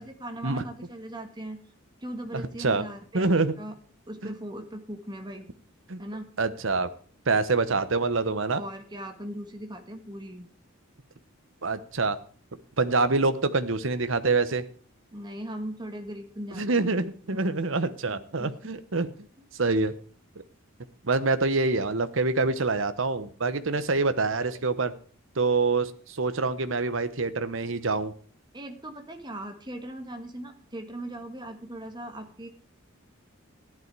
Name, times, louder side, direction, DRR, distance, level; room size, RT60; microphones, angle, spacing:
voice 1, 0.0-1.6 2.0-3.3 3.6-3.7 4.1-5.4 6.0-6.3 8.5-10.5 15.1-16.9 17.3-17.6 18.1-18.7 28.5-32.5, right 1 dB, 20° right, 5 dB, 1.6 m, -39 dB
voice 2, 2.3-2.8 3.1-3.5 4.2-4.4 5.9-6.0 6.4-6.9 7.3-8.6 11.6-12.2 12.8-14.6 16.5-19.1 19.6-19.9 21.0-24.9 25.3-28.1, right 3 dB, 65° right, 12 dB, 1.0 m, -26 dB
14.0 x 11.0 x 4.7 m, 0.43 s
head